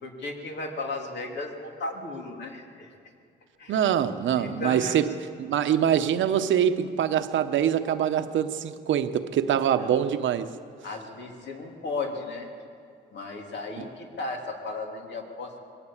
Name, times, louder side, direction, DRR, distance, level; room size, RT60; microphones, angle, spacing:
voice 1, 0.0-2.9 3.6-3.8 4.4-5.0 9.8-9.9 10.8-12.5 13.1-15.6, left 3 dB, 65° left, 3.0 m, -35 dB
voice 2, 3.7-10.5, right 9 dB, 70° right, 1.0 m, -24 dB
21.5 x 17.0 x 7.3 m
cardioid pair, 90°, 20 cm